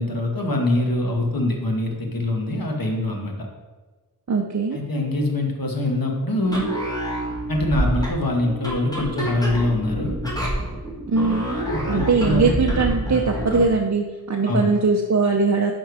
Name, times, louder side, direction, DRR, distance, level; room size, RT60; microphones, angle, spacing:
voice 1, 0.0-3.3 4.7-6.7 7.5-10.1 11.7-12.5 14.5-14.7, left 1 dB, 60° left, 1 dB, 1.3 m, -24 dB
voice 2, 4.3-4.8 11.1-11.5 11.9-15.7, right 4 dB, 45° right, 1 dB, 0.6 m, -21 dB
sound 1, 6.4-13.8, equal, 10° left, 1.8 m, -27 dB
6.3 x 4.4 x 4.7 m, 1.3 s
wide cardioid pair, 45°, 39 cm